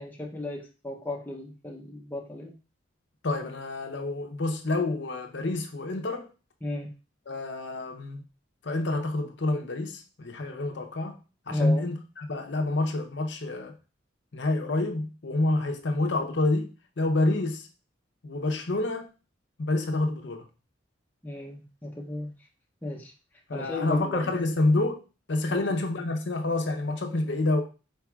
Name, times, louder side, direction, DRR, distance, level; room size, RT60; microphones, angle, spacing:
voice 1, 0.0-2.5 6.6-6.9 11.5-11.8 21.2-22.3 22.8-23.1 23.5-24.3 25.5-25.6, left 1 dB, 10° left, 0.6 m, -35 dB
voice 2, 3.2-6.3 7.3-8.2 8.6-11.2 11.5-13.7 14.3-16.7 17.0-17.7 18.2-19.1 19.6-20.4 23.5-25.0 25.3-27.6, left 2 dB, 65° left, 0.7 m, -28 dB
4.6 x 4.5 x 2.3 m
head